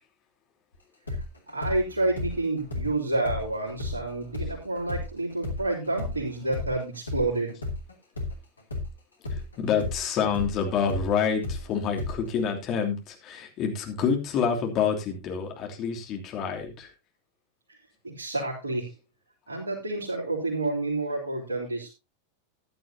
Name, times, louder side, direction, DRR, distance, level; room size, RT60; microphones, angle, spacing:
sound 1, 1.1-8.9 9.2-12.5, left 2 dB, 80° left, 2.9 m, -34 dB
voice 1, 1.5-7.6 18.0-18.9 19.5-21.9, right 2 dB, 70° right, -5 dB, 3.7 m, -29 dB
voice 2, 9.3-16.9, left 6 dB, 35° left, 2 dB, 3.0 m, -27 dB
15.0 x 11.0 x 2.8 m, 0.25 s
figure-of-eight pair, 90°, 0 cm